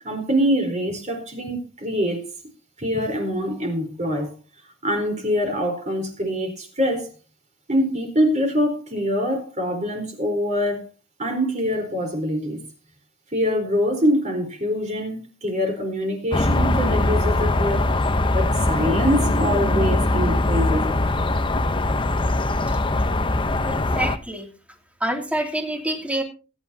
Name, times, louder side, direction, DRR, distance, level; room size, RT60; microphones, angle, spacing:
voice 1, 0.0-2.3 2.8-4.3 4.8-7.1 7.7-10.8 11.2-12.6 13.3-17.9 18.3-21.0, equal, 35° right, 4.1 m, -24 dB
sound 1, 16.3-24.2, left 2 dB, 25° left, 0.8 m, -21 dB
voice 2, 23.6-24.5 25.0-26.2, right 1 dB, 5° right, 2.6 m, -27 dB
21.5 x 10.0 x 2.8 m
head